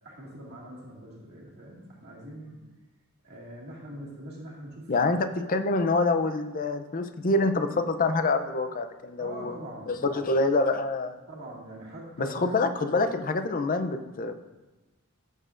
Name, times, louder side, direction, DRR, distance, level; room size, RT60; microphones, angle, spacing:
voice 1, 0.0-2.6 3.2-5.4 9.2-10.3 11.3-12.6, right 1 dB, 50° right, -5 dB, 2.0 m, -43 dB
voice 2, 4.9-9.6 9.9-11.1 12.2-14.3, left 3 dB, 40° left, 9 dB, 0.5 m, -26 dB
15.0 x 6.5 x 2.5 m, 1.1 s
head